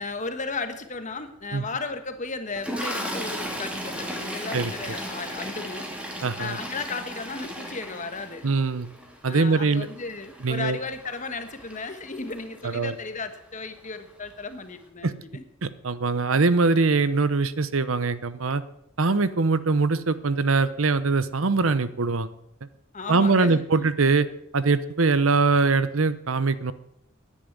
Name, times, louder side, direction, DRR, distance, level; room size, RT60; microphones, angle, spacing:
voice 1, 0.0-5.9 6.4-8.5 9.3-15.4 22.9-23.9, left 3 dB, 40° left, 8 dB, 1.4 m, -35 dB
Toilet flush, 2.5-12.8 13.8-14.0 14.2-14.4, equal, 5° right, 2.4 m, -36 dB
voice 2, 6.2-6.6 8.4-8.9 9.2-9.9 10.4-10.8 12.6-12.9 15.0-15.1 15.6-18.6 19.0-22.3 23.1-24.3 24.5-26.7, right 3 dB, 80° right, 14 dB, 0.9 m, -22 dB
10.0 x 10.0 x 9.5 m, 0.79 s
head